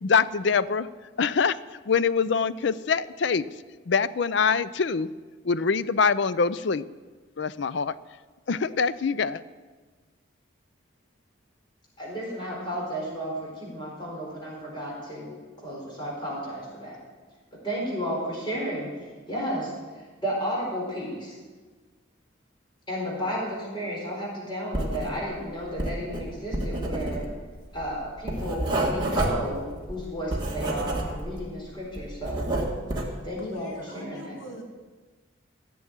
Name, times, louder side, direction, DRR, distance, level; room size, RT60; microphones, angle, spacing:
voice 1, 0.0-0.9 1.2-1.6 1.9-3.5 3.9-5.1 5.4-6.8 7.4-7.9 8.5-9.4, left 5 dB, 60° left, 16 dB, 0.4 m, -24 dB
voice 2, 12.0-17.0 17.6-21.4 22.9-27.3 27.7-32.5 33.2-33.7 33.9-34.4, equal, 25° left, -4 dB, 4.3 m, -33 dB
Writing, 24.7-25.4 25.7-31.5 31.8-33.2, right 1 dB, 20° right, 1.8 m, -29 dB
voice 3, 32.8-34.6, equal, 75° left, 1 dB, 2.6 m, -42 dB
15.0 x 7.0 x 8.8 m, 1.4 s
head